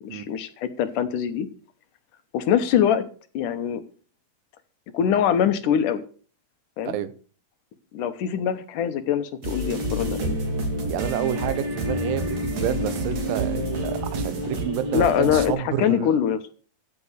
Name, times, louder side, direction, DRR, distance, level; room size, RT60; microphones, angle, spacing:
voice 1, 0.0-1.5 2.3-3.0 3.3-3.8 4.9-6.0 6.8-7.0 7.9-10.4 14.9-16.4, left 9 dB, 70° left, 11 dB, 2.4 m, -23 dB
sound 1, 9.4-15.5, right 1 dB, 55° right, 3.9 m, -28 dB
voice 2, 10.8-16.1, right 11 dB, 80° right, 14 dB, 2.6 m, -29 dB
15.0 x 6.9 x 6.7 m, 0.40 s
omnidirectional pair, 4.0 m